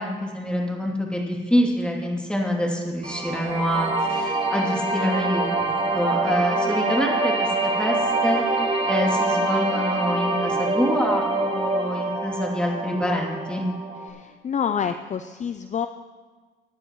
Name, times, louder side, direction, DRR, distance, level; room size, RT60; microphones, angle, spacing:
voice 1, 0.0-8.0 8.2-8.4 8.9-13.7, equal, 5° left, -1 dB, 2.9 m, -26 dB
sound 1, 3.0-14.1, right 2 dB, 30° right, 2.0 m, -25 dB
voice 2, 14.1-15.9, left 7 dB, 35° left, 9 dB, 0.5 m, -27 dB
18.5 x 10.5 x 3.1 m, 1.5 s
cardioid pair, 90°, 20 cm